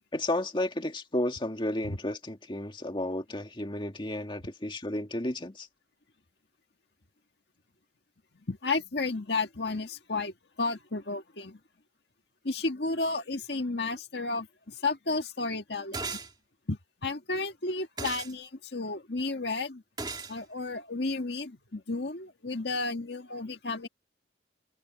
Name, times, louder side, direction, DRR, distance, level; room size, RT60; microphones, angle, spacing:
voice 1, 0.1-5.7, left 1 dB, 30° left, 2.1 m, -32 dB
voice 2, 8.5-11.6 12.4-16.2 16.7-19.8 20.3-23.9, left 3 dB, 65° left, 1.8 m, -32 dB
sound 1, 15.9-16.3 18.0-18.3 20.0-20.3, right 3 dB, 25° right, 3.2 m, -35 dB
head